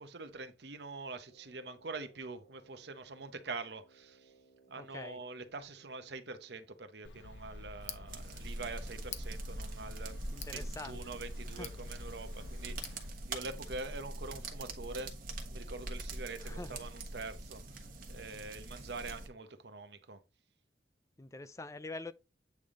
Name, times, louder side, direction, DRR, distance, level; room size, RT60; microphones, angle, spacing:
voice 1, 0.0-4.3 4.7-10.2 10.5-15.1 15.5-20.2, right 3 dB, 70° right, 0.9 m, -45 dB
Brass instrument, 1.2-6.8, right 3 dB, 60° left, 3.5 m, -65 dB
voice 2, 4.8-5.2 10.3-11.0 11.5-11.7 16.4-16.8 21.2-22.1, left 2 dB, 15° left, 0.4 m, -45 dB
Tick, 7.0-13.1, left 4 dB, 90° left, 0.8 m, -48 dB
sound 1, 8.1-19.3, right 2 dB, 50° right, 1.3 m, -43 dB
8.5 x 3.5 x 3.7 m
head